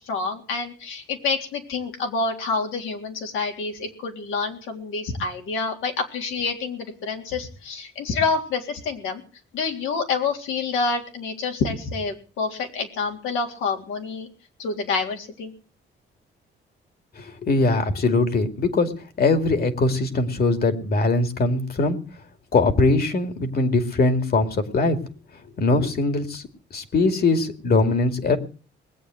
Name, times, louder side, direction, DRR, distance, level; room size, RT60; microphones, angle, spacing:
voice 1, 0.0-9.2 9.5-14.3 14.6-15.5, left 4 dB, 90° left, 3 dB, 3.6 m, -27 dB
voice 2, 17.2-18.9 19.2-22.0 22.5-25.0 25.6-26.4 26.7-28.4, left 3 dB, 50° left, 8 dB, 2.5 m, -21 dB
20.0 x 8.8 x 7.8 m, 0.39 s
cardioid pair, 90°, 20 cm